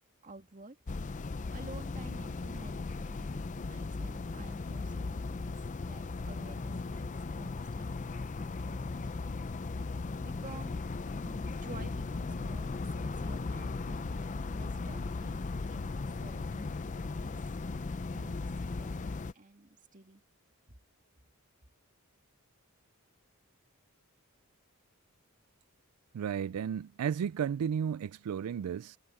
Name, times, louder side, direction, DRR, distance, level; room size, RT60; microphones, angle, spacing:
voice 1, 0.2-0.8 1.5-5.6 5.9-9.1 10.2-10.8 11.1-15.4 15.7-17.4 18.1-18.5 18.8-20.2, right 2 dB, 35° right, 1.8 m, -51 dB
sound 1, 0.9-19.3, left 3 dB, 35° left, 0.5 m, -37 dB
voice 2, 26.1-29.0, right 8 dB, 85° right, 0.3 m, -33 dB
head